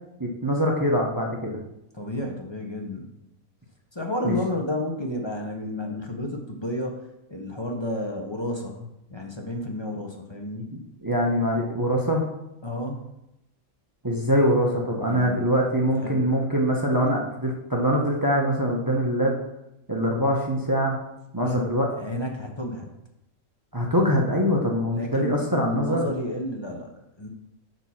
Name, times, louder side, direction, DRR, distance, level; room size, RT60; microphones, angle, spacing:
voice 1, 0.2-1.6 4.2-4.4 10.7-12.3 14.0-19.4 19.9-21.0 21.3-21.9 23.7-26.1, equal, 20° right, -1 dB, 0.8 m, -23 dB
voice 2, 1.9-3.1 3.9-7.0 7.3-10.7 12.6-13.0 15.1-15.5 15.9-16.2 21.4-21.6 22.0-22.9 24.9-27.3, left 1 dB, 25° left, 1 dB, 0.6 m, -31 dB
6.8 x 4.2 x 5.7 m, 0.85 s
omnidirectional pair, 1.5 m